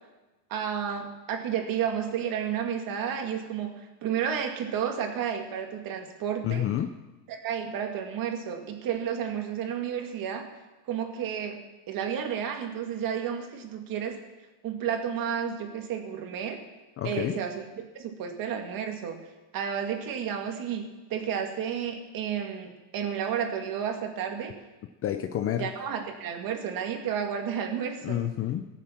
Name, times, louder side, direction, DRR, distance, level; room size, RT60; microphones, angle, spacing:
voice 1, 0.5-6.6 7.3-10.5 10.9-11.6 11.9-14.2 14.6-16.6 17.0-17.7 17.9-19.2 19.5-24.6 25.6-28.2, right 8 dB, 45° right, 4 dB, 2.1 m, -31 dB
voice 2, 6.4-6.9 17.0-17.4 25.0-25.7 28.0-28.7, left 11 dB, 30° left, 9 dB, 0.5 m, -29 dB
17.5 x 7.5 x 7.2 m, 1.1 s
cardioid pair, 145°, 49 cm